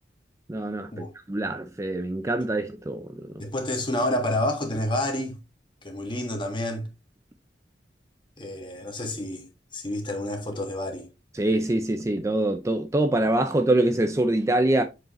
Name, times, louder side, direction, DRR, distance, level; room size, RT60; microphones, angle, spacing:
voice 1, 0.5-3.3 11.3-14.8, right 1 dB, 15° right, 0.5 m, -24 dB
voice 2, 3.4-5.4 5.8-6.9 8.4-9.4 9.7-11.1, left 1 dB, 30° left, 1.6 m, -29 dB
7.6 x 4.8 x 3.0 m
head